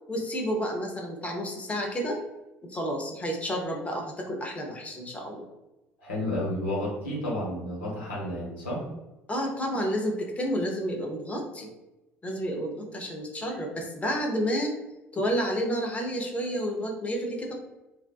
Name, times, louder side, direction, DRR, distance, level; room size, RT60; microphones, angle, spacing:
voice 1, 0.1-2.2 2.7-5.5 9.3-11.7 12.2-14.8 15.1-17.5, equal, 20° left, 1 dB, 0.6 m, -30 dB
voice 2, 6.0-8.8, left 1 dB, 70° left, -5 dB, 1.0 m, -31 dB
2.5 x 2.1 x 2.3 m, 0.98 s
figure-of-eight pair, 60°, 7 cm